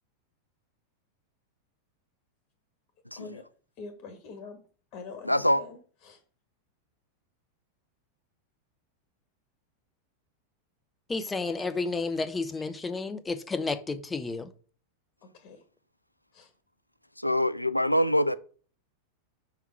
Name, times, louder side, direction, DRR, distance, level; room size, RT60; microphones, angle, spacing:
voice 1, 3.1-3.4 3.8-4.6 4.9-6.2 15.2-15.7 16.3-16.5, left 4 dB, 40° left, 1.4 m, -45 dB
voice 2, 5.3-5.6 17.2-18.3, left 1 dB, 90° left, 0.4 m, -23 dB
voice 3, 11.1-14.5, left 3 dB, 15° left, 0.8 m, -31 dB
5.7 x 3.7 x 5.9 m
figure-of-eight pair, 90°, 0 cm